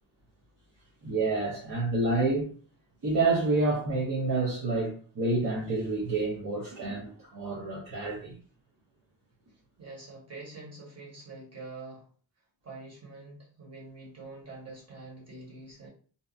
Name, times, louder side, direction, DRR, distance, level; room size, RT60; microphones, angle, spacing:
voice 1, 1.0-2.5 3.0-8.3, right 3 dB, 55° right, 0.8 m, -28 dB
voice 2, 9.8-12.1 12.6-15.9, right 3 dB, 35° right, 1.3 m, -45 dB
2.7 x 2.3 x 2.5 m
wide cardioid pair, 110°, 41 cm